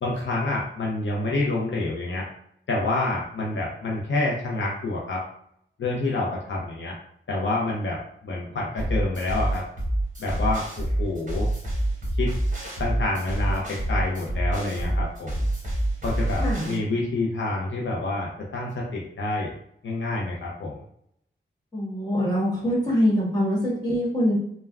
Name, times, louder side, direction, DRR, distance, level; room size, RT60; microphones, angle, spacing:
voice 1, 0.0-2.3 2.7-5.2 5.8-6.9 7.3-9.6 10.2-11.5 12.2-12.3 12.8-15.5 16.0-19.5 19.8-20.8, left 2 dB, 70° left, -4 dB, 0.6 m, -28 dB
sound 1, 8.8-16.8, right 1 dB, 40° right, 1.1 m, -27 dB
voice 2, 16.4-16.8 21.7-24.4, equal, 20° left, -7 dB, 1.4 m, -24 dB
3.4 x 2.1 x 2.3 m, 0.71 s
wide cardioid pair, 90°, 21 cm